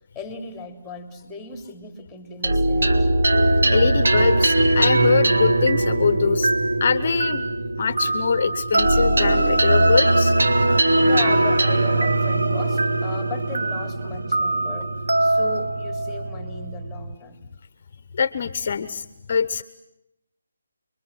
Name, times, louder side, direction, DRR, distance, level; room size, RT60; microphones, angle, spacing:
voice 1, 0.1-3.3 11.0-14.9 15.2-17.4, left 4 dB, 5° left, 7 dB, 3.3 m, -37 dB
sound 1, 2.4-17.1, right 2 dB, 70° right, 2.0 m, -20 dB
voice 2, 3.6-6.5 6.8-7.5 7.8-10.3 18.1-19.6, left 6 dB, 45° left, 14 dB, 1.0 m, -23 dB
29.5 x 23.0 x 7.6 m, 0.87 s
figure-of-eight pair, 155°, 0 cm